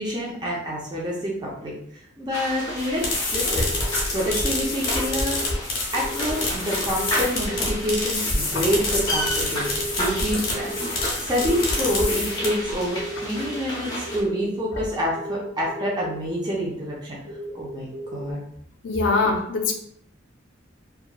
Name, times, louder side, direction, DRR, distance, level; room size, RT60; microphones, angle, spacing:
voice 1, 0.0-3.7 4.1-5.4 5.9-17.2 17.5-18.4, equal, 20° right, -4 dB, 0.5 m, -27 dB
sound 1, 2.3-14.2, equal, 20° left, 0.8 m, -32 dB
sound 2, 2.8-12.7, left 2 dB, 45° left, 0.8 m, -27 dB
sound 3, 3.6-5.6 5.9-6.5 6.9-7.8 8.9-10.2 10.5-12.6 12.8-13.6 14.1-14.6 15.2-16.2 16.8-18.3, right 1 dB, 90° right, 0.6 m, -35 dB
voice 2, 18.8-19.7, left 3 dB, 65° left, 4 dB, 0.4 m, -22 dB
2.9 x 2.3 x 2.2 m, 0.68 s
head